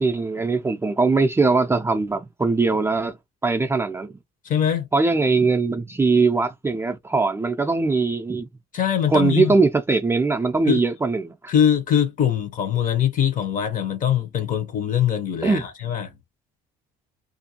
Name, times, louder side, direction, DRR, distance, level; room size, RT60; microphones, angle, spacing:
voice 1, 0.0-3.2 3.4-4.1 4.9-8.5 9.1-11.3 15.4-15.6, right 3 dB, 15° right, 0.4 m, -21 dB
voice 2, 4.4-4.9 8.7-9.5 10.7-10.8 11.5-16.1, left 9 dB, 50° left, 0.8 m, -22 dB
2.5 x 2.3 x 2.8 m
cardioid pair, 110°, 17 cm